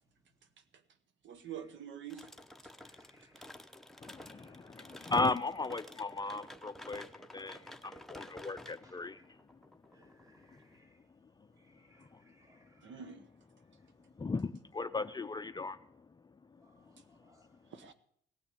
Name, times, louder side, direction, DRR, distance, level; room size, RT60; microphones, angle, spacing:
voice 1, 1.2-2.3 12.8-13.3 17.7-17.9, right 8 dB, 70° right, 1.1 m, -46 dB
sound 1, 2.1-10.8, left 1 dB, ahead, 0.9 m, -52 dB
voice 2, 2.8-3.5 4.2-4.6 5.0-5.1 8.8-9.0 9.9-11.1 11.5-13.0 14.9-15.2 16.6-17.6, equal, 15° right, 2.7 m, -67 dB
voice 3, 4.0-9.4 12.0-12.2 14.2-15.8, left 3 dB, 20° left, 0.5 m, -36 dB
17.5 x 6.1 x 10.0 m
cardioid pair, 90°, 20 cm